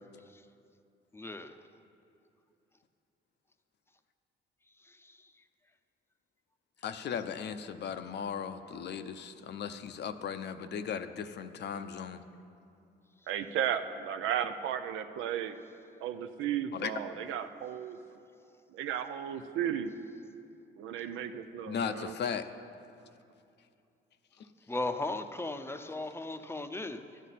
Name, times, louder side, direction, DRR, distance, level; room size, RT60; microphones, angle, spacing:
voice 1, 1.1-1.7 4.7-5.4 13.2-13.3 24.4-27.2, left 2 dB, 10° left, 8 dB, 0.6 m, -38 dB
voice 2, 6.8-12.2 16.7-16.9 21.7-22.5, left 7 dB, 60° left, 10 dB, 0.6 m, -37 dB
voice 3, 13.3-15.6 16.0-18.0 18.7-19.9 20.8-22.1, right 9 dB, 90° right, 9 dB, 0.6 m, -34 dB
13.5 x 9.4 x 4.1 m, 2.6 s
cardioid pair, 90°, 20 cm